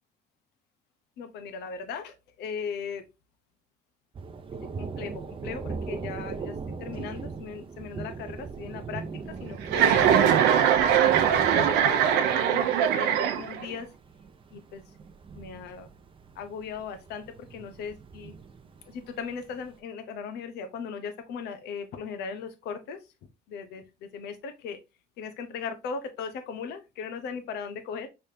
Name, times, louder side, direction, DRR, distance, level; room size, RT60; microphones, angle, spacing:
voice 1, 1.2-3.0 4.5-6.5 6.8-9.0 9.4-10.0 10.5-12.2 12.5-13.9 14.5-14.8 15.3-15.9 16.4-17.2 17.5-18.3 18.9-23.0 23.5-24.8 25.2-28.1, left 6 dB, 80° left, 8 dB, 0.8 m, -38 dB
Thunder, 4.1-19.7, right 4 dB, 30° right, 0.6 m, -40 dB
Chuckle chortle, 9.7-13.7, right 9 dB, 90° right, 0.8 m, -21 dB
5.1 x 3.4 x 2.8 m, 0.26 s
cardioid pair, 110°, 17 cm